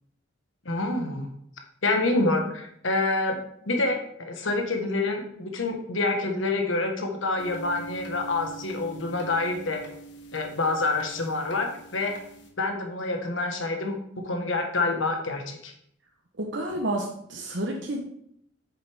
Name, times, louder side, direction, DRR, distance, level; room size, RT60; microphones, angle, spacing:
voice 1, 0.6-1.3 1.8-3.4 3.7-9.8 10.3-12.2 12.6-14.0 14.2-15.7, left 2 dB, 85° left, 4 dB, 1.4 m, -27 dB
sound 1, 7.4-12.5, right 3 dB, 65° left, 1.3 m, -44 dB
voice 2, 16.4-18.0, right 1 dB, 65° right, 1 dB, 1.0 m, -30 dB
9.2 x 6.6 x 3.6 m, 0.70 s
head